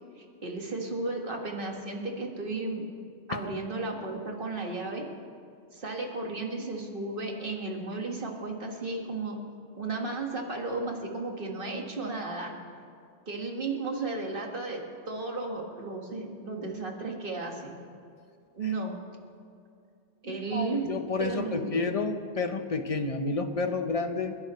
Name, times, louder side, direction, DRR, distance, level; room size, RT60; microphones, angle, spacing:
voice 1, 0.2-2.8 3.3-5.1 5.7-9.4 9.7-12.6 13.3-17.7 18.6-19.0 20.2-20.9 21.2-21.8, right 3 dB, 50° right, 1 dB, 1.9 m, -34 dB
voice 2, 20.2-24.4, left 3 dB, 35° left, 7 dB, 0.8 m, -30 dB
30.0 x 11.5 x 3.1 m, 2.4 s
omnidirectional pair, 1.2 m